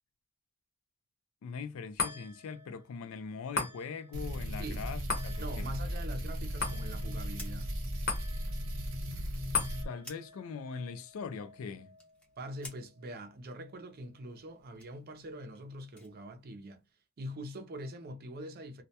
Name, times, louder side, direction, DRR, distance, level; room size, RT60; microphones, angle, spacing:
voice 1, 1.4-5.7 9.8-11.9, left 5 dB, 75° left, 0.3 m, -41 dB
sound 1, 2.0-14.6 15.0-15.1, left 4 dB, 50° left, 0.7 m, -41 dB
sound 2, 4.1-9.9, equal, 80° right, 0.7 m, -36 dB
voice 2, 4.6-4.9 5.4-7.7 12.4-16.8 17.2-18.8, right 1 dB, 45° right, 0.5 m, -43 dB
sound 3, 7.3-9.7 10.0-10.3 10.6-12.9 14.3-16.8, left 1 dB, 5° left, 0.6 m, -55 dB
2.2 x 2.0 x 2.7 m
head